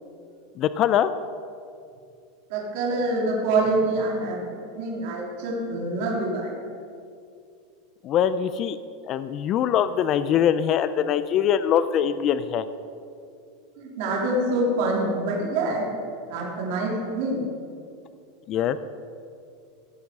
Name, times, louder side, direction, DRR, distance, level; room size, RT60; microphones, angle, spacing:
voice 1, 0.6-1.1 8.0-8.8 9.1-12.6 18.5-18.8, left 9 dB, 35° left, 13 dB, 0.4 m, -23 dB
voice 2, 2.5-6.6 13.8-15.8 16.3-17.4, right 2 dB, 60° right, -3 dB, 3.2 m, -26 dB
16.5 x 7.3 x 5.4 m, 2.4 s
supercardioid pair, 150°, 0 cm